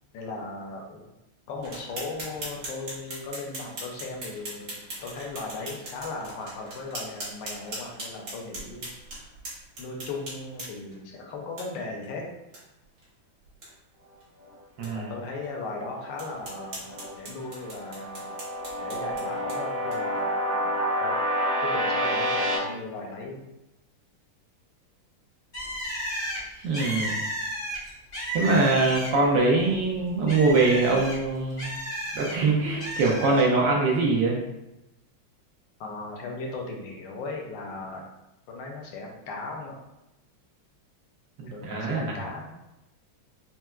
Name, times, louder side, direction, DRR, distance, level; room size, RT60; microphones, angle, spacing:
voice 1, 0.1-1.0 1.5-4.8 5.0-8.9 9.8-12.2 14.9-18.3 18.8-21.2 21.6-23.5 35.8-38.0 38.5-39.8 41.4-42.5, left 3 dB, 75° left, 1 dB, 1.1 m, -37 dB
sound 1, 1.6-11.0 11.6-11.7 12.0-12.1 12.5-12.6 13.0-13.1 13.5-13.7 14.2-14.3 14.8-14.9 15.4-15.5 16.2-20.2, right 1 dB, 60° right, 1.7 m, -40 dB
sound 2, 14.8-17.1 17.5-22.6, equal, 35° right, 0.9 m, -29 dB
voice 2, 14.8-15.1 26.6-27.2 28.3-31.7 32.1-34.4 41.4-42.1, right 3 dB, 75° right, -2 dB, 1.1 m, -23 dB
Bird, 25.5-29.4 29.7-32.3 32.8-33.4, equal, 55° left, 0.6 m, -33 dB
4.3 x 2.0 x 2.2 m, 0.93 s
omnidirectional pair, 2.3 m